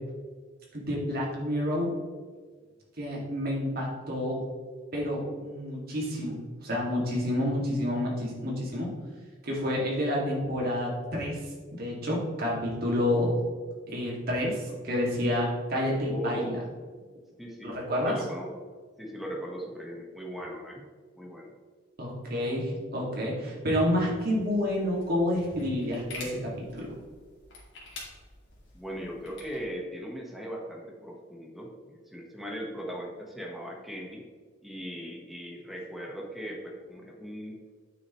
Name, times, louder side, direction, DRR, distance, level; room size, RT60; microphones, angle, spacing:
voice 1, 0.7-2.0 3.0-4.4 4.9-8.9 9.4-11.4 11.7-13.4 13.9-14.6 14.8-16.6 17.6-18.2 22.0-26.9, left 1 dB, 55° right, -4 dB, 2.3 m, -29 dB
voice 2, 16.0-16.7 17.4-17.8 18.0-18.6 19.0-20.8 21.1-21.5 28.7-34.2 34.6-37.6, equal, ahead, -1 dB, 1.3 m, -38 dB
sound 1, 24.4-29.6, left 2 dB, 65° left, 2.4 m, -47 dB
9.1 x 6.6 x 3.1 m, 1.5 s
head